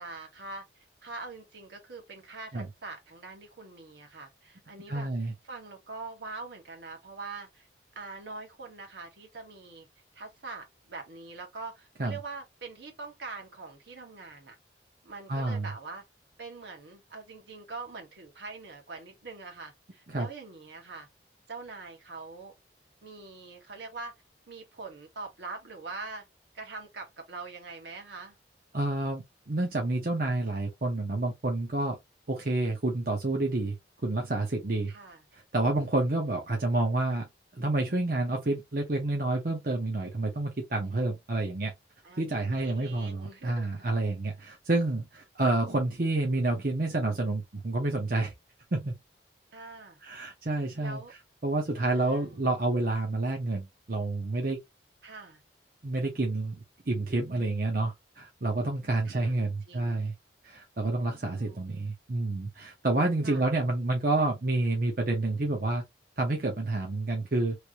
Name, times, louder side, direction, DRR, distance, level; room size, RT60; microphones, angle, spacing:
voice 1, 0.0-5.1 5.4-7.7 7.9-9.9 10.1-14.5 15.0-16.0 16.4-21.1 21.5-22.5 23.0-24.1 24.5-26.2 26.5-28.3 34.9-35.2 42.0-43.9 49.5-50.0 50.8-51.1 51.9-52.5 55.0-55.4 59.0-60.0 61.3-61.7 63.2-63.4, right 3 dB, 70° right, 1.3 m, -43 dB
voice 2, 4.9-5.3 12.0-12.2 15.3-15.7 20.1-20.3 28.7-32.0 32.3-33.7 34.0-34.9 35.5-37.2 37.6-41.7 42.2-48.3 48.7-48.9 50.0-51.0 51.4-54.6 55.8-56.6 56.9-60.1 60.4-65.8 66.2-67.6, right 2 dB, 50° right, 0.8 m, -29 dB
3.2 x 2.6 x 2.9 m
head